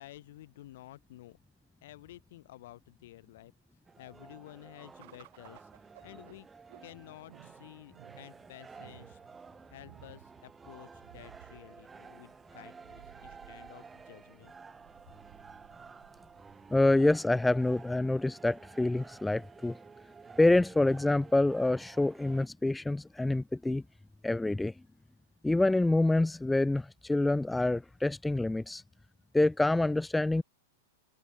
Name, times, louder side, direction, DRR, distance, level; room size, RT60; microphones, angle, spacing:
voice 1, 0.0-1.4 1.8-3.5 4.0-5.7 6.0-6.5 6.8-9.2 9.7-14.5, left 15 dB, 55° left, 4.6 m, -52 dB
sound 1, 3.9-22.5, right 5 dB, 15° right, 4.0 m, -52 dB
sound 2, 5.0-17.6, right 18 dB, 55° right, 7.0 m, -59 dB
voice 2, 16.7-19.8 20.4-23.8 24.2-24.7 25.4-28.8 29.3-30.4, left 2 dB, 5° left, 0.4 m, -27 dB
figure-of-eight pair, 100°, 0 cm